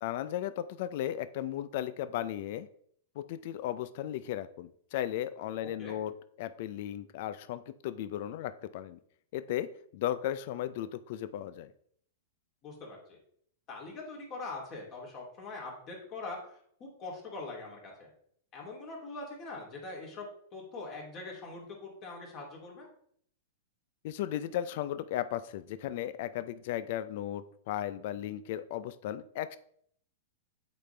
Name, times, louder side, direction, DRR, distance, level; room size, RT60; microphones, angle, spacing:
voice 1, 0.0-2.7 3.2-6.1 6.4-9.0 9.3-11.7 24.0-29.6, left 12 dB, 60° left, 14 dB, 0.4 m, -35 dB
voice 2, 12.6-13.2 13.7-18.1 18.5-20.3 20.5-22.9, left 3 dB, 35° left, -1 dB, 2.7 m, -43 dB
8.2 x 4.2 x 3.3 m, 0.65 s
hypercardioid pair, 120°, 0 cm